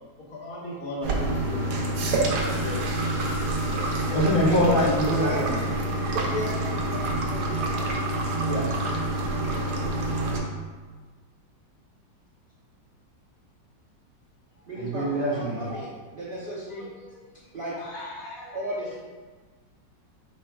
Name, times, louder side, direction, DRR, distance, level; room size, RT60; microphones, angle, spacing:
voice 1, 0.3-3.1 14.7-14.8 15.1-16.0 16.7-17.2 17.7-19.0, left 2 dB, 60° left, -3 dB, 1.0 m, -38 dB
sound 1, 1.0-10.4, right 2 dB, 70° right, 1.1 m, -27 dB
voice 2, 3.8-5.5 8.4-8.8 14.7-15.7, left 1 dB, 85° left, -9 dB, 0.4 m, -25 dB
voice 3, 4.5-5.7 6.2-7.9 9.5-9.7 14.7-16.9 17.5-17.9 18.5-19.0, equal, 90° right, -7 dB, 0.4 m, -34 dB
4.7 x 4.3 x 2.3 m, 1.4 s
omnidirectional pair, 2.0 m